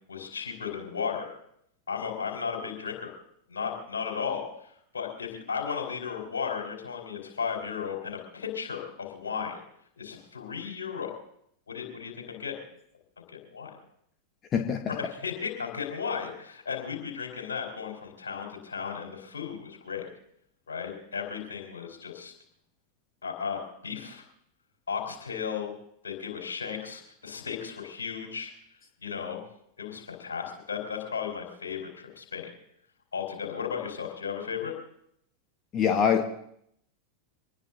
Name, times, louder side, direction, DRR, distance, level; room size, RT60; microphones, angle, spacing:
voice 1, 0.1-1.3 1.9-3.1 3.5-4.5 4.9-9.6 10.0-11.1 11.7-12.6 13.2-13.7 14.9-20.1 20.7-22.3 23.2-24.2 24.9-25.7 26.0-28.5 29.0-29.4 29.8-32.5 33.1-34.7, left 6 dB, 70° left, 1 dB, 4.4 m, -35 dB
voice 2, 14.5-14.9 35.7-36.2, left 7 dB, 30° left, 6 dB, 1.2 m, -24 dB
25.5 x 19.5 x 2.7 m, 0.72 s
figure-of-eight pair, 90°, 0 cm